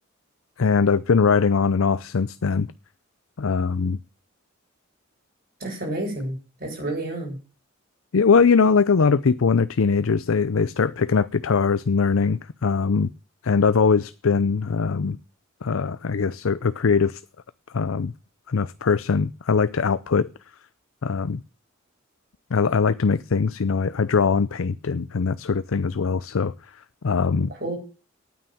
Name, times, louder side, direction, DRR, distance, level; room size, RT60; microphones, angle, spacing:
voice 1, 0.6-2.7 3.4-4.0 8.1-13.1 13.4-15.2 15.6-17.2 17.7-18.1 18.5-20.3 21.0-21.4 22.5-26.5 27.0-27.5, left 5 dB, 80° left, 0.5 m, -21 dB
voice 2, 5.6-6.3 6.6-7.3 27.2-27.3 27.6-27.8, right 1 dB, 45° right, 7.6 m, -29 dB
9.4 x 9.3 x 8.6 m
head